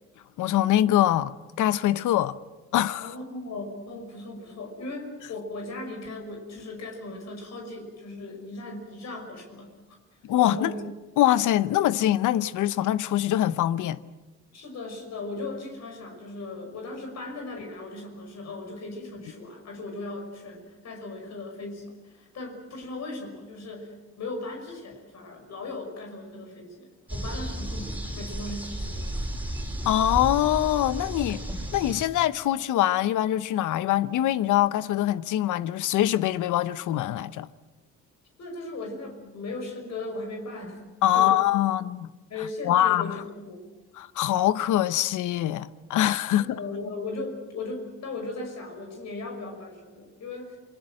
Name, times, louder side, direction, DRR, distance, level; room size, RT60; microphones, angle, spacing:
voice 1, 0.4-2.3 2.7-3.1 10.2-10.7 11.2-14.0 29.8-31.5 31.7-37.5 41.0-42.1 42.6-43.2 44.0-46.6, left 12 dB, 85° left, 0.9 m, -24 dB
voice 2, 3.0-9.7 10.4-10.8 14.5-29.3 38.4-40.9 41.1-41.4 42.3-43.6 46.4-50.6, left 2 dB, 60° left, 5.8 m, -37 dB
sound 1, 27.1-32.1, right 1 dB, 5° right, 4.7 m, -33 dB
28.0 x 21.0 x 7.7 m
cardioid pair, 90°, 30 cm